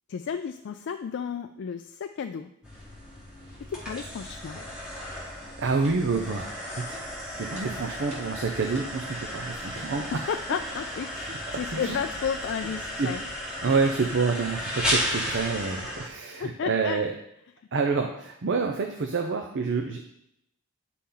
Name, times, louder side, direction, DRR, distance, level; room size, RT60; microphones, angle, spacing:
voice 1, 0.1-2.5 3.7-4.6 10.1-13.2 16.4-17.0, left 7 dB, 55° left, 7 dB, 0.3 m, -33 dB
sound 1, 2.6-16.1, equal, 5° right, 1.6 m, -34 dB
sound 2, 5.4-5.5 5.8-6.0 6.4-6.5 6.9-7.1 7.6-7.7 8.1-8.3 8.7-9.0 9.7-10.0 11.3-11.5 12.6-12.9 13.7-13.9, equal, 30° right, 1.4 m, -44 dB
voice 2, 5.6-6.9 7.3-10.0 11.7-12.0 13.0-13.1 13.6-17.1 17.7-20.0, right 4 dB, 55° right, 4 dB, 0.6 m, -28 dB
9.8 x 4.2 x 3.8 m, 0.79 s
head